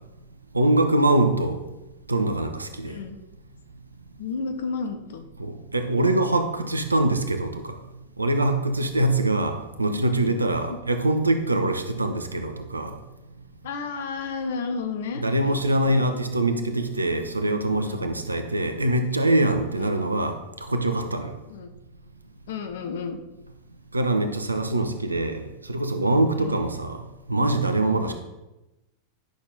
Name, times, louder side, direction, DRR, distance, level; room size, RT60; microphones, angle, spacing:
voice 1, 0.5-1.6 2.1-3.0 5.4-7.8 8.2-13.0 15.2-20.4 20.7-21.3 23.9-27.0 27.3-28.1, right 1 dB, 80° right, 8 dB, 0.8 m, -23 dB
voice 2, 2.8-3.2 4.2-5.2 9.9-10.8 13.6-16.1 17.8-18.0 19.7-20.2 20.9-21.1 21.5-21.7 22.5-23.2 26.4-26.7 28.0-28.1, left 5 dB, 60° left, 6 dB, 1.0 m, -33 dB
10.0 x 6.2 x 3.9 m, 0.98 s
figure-of-eight pair, 90°, 0 cm